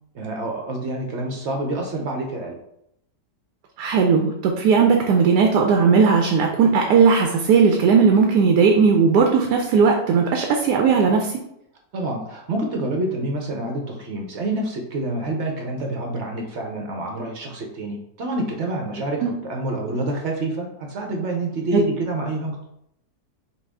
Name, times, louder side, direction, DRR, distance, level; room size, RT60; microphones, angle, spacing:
voice 1, 0.1-2.6 11.9-22.6, right 2 dB, 60° right, 1 dB, 0.8 m, -27 dB
voice 2, 3.8-11.3 19.2-19.3 21.7-21.8, right 5 dB, 85° right, 2 dB, 1.2 m, -17 dB
5.6 x 2.4 x 3.4 m, 0.77 s
omnidirectional pair, 1.7 m